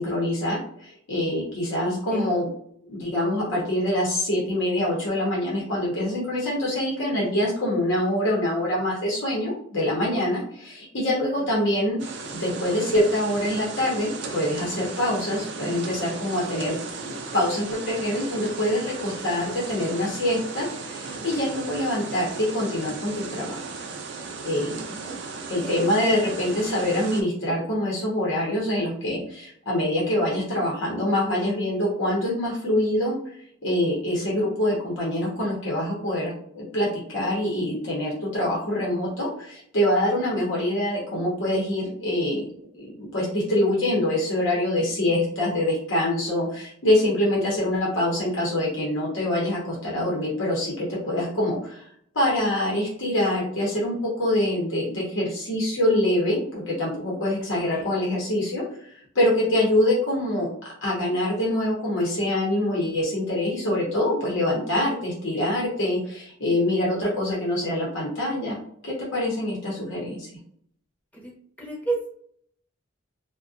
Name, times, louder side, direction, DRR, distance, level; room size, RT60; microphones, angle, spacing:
voice 1, 0.0-2.5 2.9-12.0 12.4-23.6 24.4-25.2 25.5-42.5 42.8-51.8 52.1-60.5 60.8-68.6 68.8-70.3, left 1 dB, 75° left, -5 dB, 0.8 m, -25 dB
voice 2, 1.8-2.3 11.4-11.5 25.0-25.1 25.5-25.8 57.4-57.9 71.1-71.3 71.6-72.1, right 3 dB, 10° left, -4 dB, 0.7 m, -33 dB
sound 1, 12.0-27.2, right 4 dB, 60° right, 0.4 m, -36 dB
2.4 x 2.2 x 2.5 m, 0.64 s
head